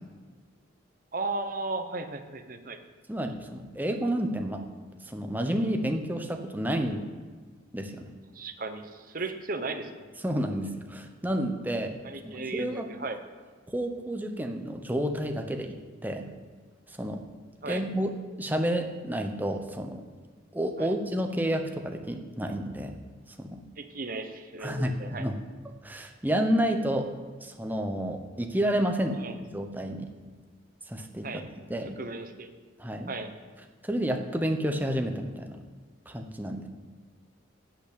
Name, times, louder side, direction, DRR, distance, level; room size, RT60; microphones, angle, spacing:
voice 1, 1.1-2.8 8.3-10.1 12.0-13.2 17.6-17.8 20.8-20.9 23.8-25.3 29.2-29.3 31.2-31.4 32.0-32.5 33.1-33.3, right 3 dB, 45° right, 7 dB, 1.0 m, -35 dB
voice 2, 3.1-4.6 5.1-7.0 7.7-8.1 10.2-12.0 12.2-12.9 13.7-15.8 16.0-16.3 17.0-17.2 17.7-18.1 18.4-20.0 20.5-22.9 23.4-23.6 24.6-25.4 25.8-27.1 27.4-29.2 29.5-30.1 30.9-31.4 31.7-32.0 32.8-33.1 33.8-35.6 36.1-36.7, equal, 10° right, 5 dB, 0.9 m, -30 dB
12.5 x 5.8 x 8.5 m, 1.5 s
head